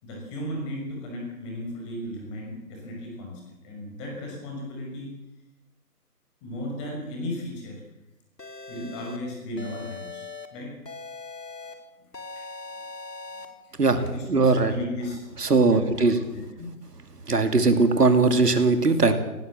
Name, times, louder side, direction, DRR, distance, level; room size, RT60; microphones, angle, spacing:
voice 1, 0.0-5.1 6.4-7.8 8.7-10.7 12.4-12.5 13.3-16.7, left 1 dB, 20° left, 0 dB, 6.0 m, -36 dB
sound 1, 8.4-9.2 9.6-10.5 10.9-11.7 12.1-13.5, left 4 dB, 90° left, 3.6 m, -40 dB
voice 2, 14.3-14.7 15.4-16.2 17.3-19.1, right 3 dB, 70° right, 8 dB, 2.8 m, -20 dB
18.5 x 18.5 x 7.8 m, 1.0 s
figure-of-eight pair, 160°, 48 cm